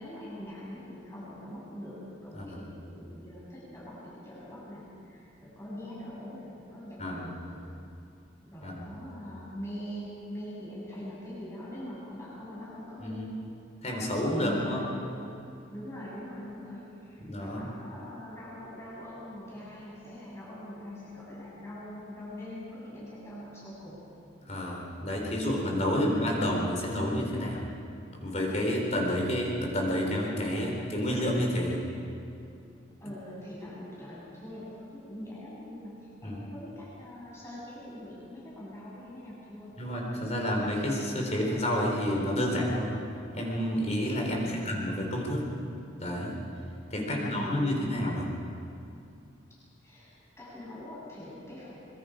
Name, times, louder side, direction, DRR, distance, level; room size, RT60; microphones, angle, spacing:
voice 1, 0.0-7.6 8.4-13.3 14.3-15.2 15.7-24.0 33.0-39.7 44.2-44.8 46.9-48.1 49.8-51.8, left 1 dB, 15° left, -8 dB, 7.2 m, -42 dB
voice 2, 7.0-7.3 8.6-8.9 13.0-13.3 13.8-14.8 17.2-17.7 24.5-27.6 28.2-31.8 36.2-36.4 39.8-42.9 43.3-45.4 46.0-46.4 46.9-48.3, equal, 35° left, -1 dB, 4.0 m, -29 dB
24.5 x 23.0 x 5.1 m, 2.6 s
head